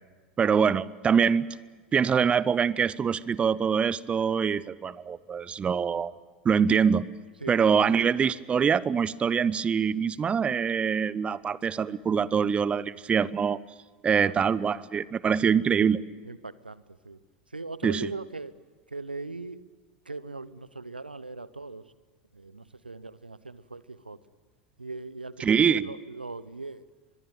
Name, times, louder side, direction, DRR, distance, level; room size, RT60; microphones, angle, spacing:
voice 1, 0.4-1.5 1.9-6.1 6.4-7.1 7.5-13.6 14.0-16.0 17.8-18.1 25.4-25.9, right 6 dB, 25° right, 20 dB, 0.7 m, -24 dB
voice 2, 7.4-8.1 14.1-14.7 16.2-17.2 17.5-18.5 18.9-19.6 20.1-21.9 22.3-24.2 24.8-26.8, right 3 dB, 85° right, 18 dB, 0.8 m, -40 dB
24.0 x 22.0 x 9.0 m, 1.4 s
figure-of-eight pair, 80°, 5 cm